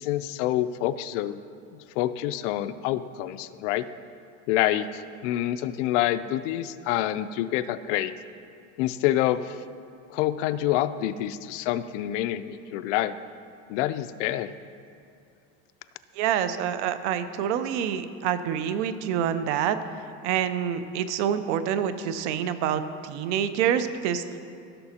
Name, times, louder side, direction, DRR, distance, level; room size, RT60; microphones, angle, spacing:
voice 1, 0.0-1.4 1.7-3.9 4.5-8.1 8.8-9.6 10.1-13.1 13.7-14.5, left 13 dB, 80° left, 12 dB, 0.5 m, -27 dB
voice 2, 16.2-19.8 20.2-24.4, right 9 dB, 70° right, 11 dB, 0.6 m, -27 dB
16.0 x 6.9 x 2.8 m, 2.6 s
supercardioid pair, 155°, 36 cm